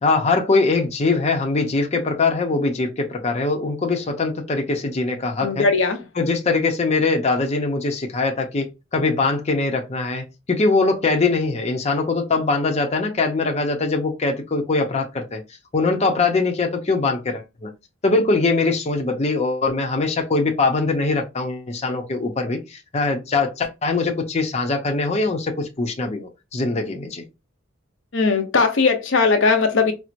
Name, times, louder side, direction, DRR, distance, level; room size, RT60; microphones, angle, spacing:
voice 1, 0.0-5.7 6.2-8.7 8.9-15.4 15.7-17.7 18.0-22.6 22.9-27.2, left 3 dB, 35° left, 0.6 m, -22 dB
voice 2, 5.4-6.0 28.1-29.9, left 4 dB, 75° left, 0.7 m, -18 dB
4.4 x 2.0 x 2.5 m
head